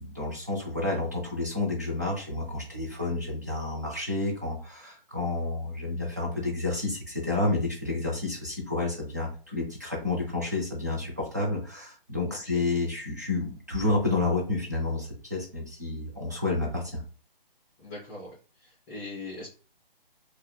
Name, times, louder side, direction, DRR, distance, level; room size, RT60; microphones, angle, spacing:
voice 1, 0.0-17.0, left 2 dB, 20° right, -4 dB, 0.3 m, -30 dB
voice 2, 12.3-12.6 17.8-19.5, left 2 dB, 15° left, -7 dB, 0.8 m, -41 dB
2.7 x 2.5 x 2.2 m, 0.36 s
hypercardioid pair, 155°, 29 cm